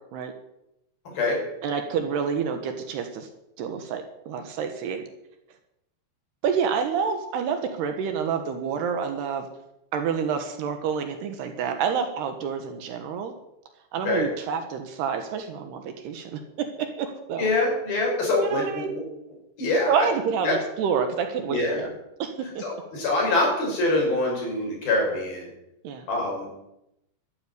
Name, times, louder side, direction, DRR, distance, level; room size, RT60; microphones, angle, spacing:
voice 1, 1.6-3.3 3.6-5.0 6.4-9.5 9.9-13.3 13.9-17.5 18.4-18.9 19.9-21.9 22.2-22.6 25.8-26.1, right 6 dB, 70° right, 6 dB, 3.2 m, -28 dB
voice 2, 17.4-19.0 19.6-20.1 20.4-20.6 21.5-21.9 22.6-25.5 26.1-26.6, left 2 dB, 55° left, -1 dB, 7.7 m, -25 dB
12.5 x 11.5 x 9.6 m, 0.85 s
omnidirectional pair, 5.2 m